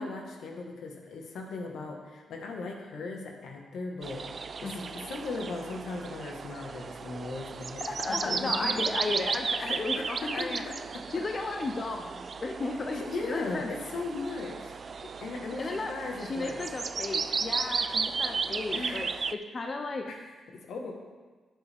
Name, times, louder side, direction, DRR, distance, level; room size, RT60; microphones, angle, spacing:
voice 1, 0.0-8.9 9.6-11.0 12.9-14.8 15.2-16.6 18.7-19.1 20.1-20.2 20.7-20.9, left 3 dB, 80° left, 2 dB, 1.5 m, -38 dB
sound 1, 4.0-19.3, right 5 dB, 45° right, 0.3 m, -34 dB
voice 2, 4.6-5.0 7.8-10.6 11.1-13.7 15.0-15.2 15.6-19.1 19.5-20.1, left 3 dB, 35° left, 4 dB, 0.6 m, -34 dB
11.0 x 8.1 x 3.5 m, 1.4 s
cardioid pair, 105°, 0 cm